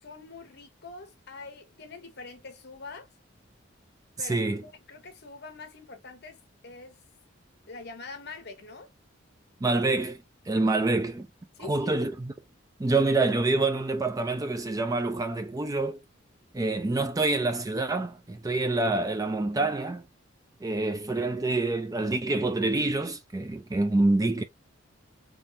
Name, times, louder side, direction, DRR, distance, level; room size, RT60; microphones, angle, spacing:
voice 1, 0.0-3.1 4.2-6.4 6.6-7.0 7.7-8.9 11.6-11.9, left 3 dB, 55° left, 1.0 m, -44 dB
voice 2, 4.2-4.6 9.6-10.2 10.5-11.3 11.6-12.3 12.8-16.0 16.5-20.0 20.6-24.4, right 2 dB, 20° right, 0.4 m, -26 dB
3.5 x 3.2 x 2.6 m
head